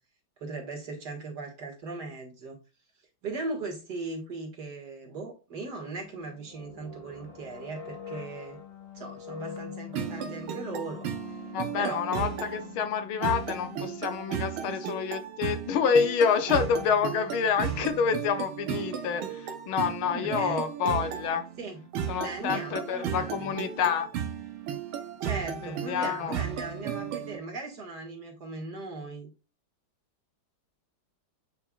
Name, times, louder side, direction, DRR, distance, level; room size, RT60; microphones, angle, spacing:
voice 1, 0.4-2.6 3.2-8.6 8.9-11.1 11.7-12.1 14.7-14.8 20.0-20.7 21.6-21.8 22.1-23.5 25.2-29.3, right 3 dB, 50° right, 0 dB, 2.5 m, -38 dB
sound 1, 6.0-14.8, left 7 dB, 25° left, 1.1 m, -44 dB
sound 2, 9.9-27.4, right 9 dB, 85° right, 1.8 m, -35 dB
voice 2, 11.5-21.4 22.1-24.1 25.6-26.4, left 7 dB, 80° left, 9 dB, 1.7 m, -28 dB
9.0 x 4.6 x 2.4 m, 0.30 s
omnidirectional pair, 2.2 m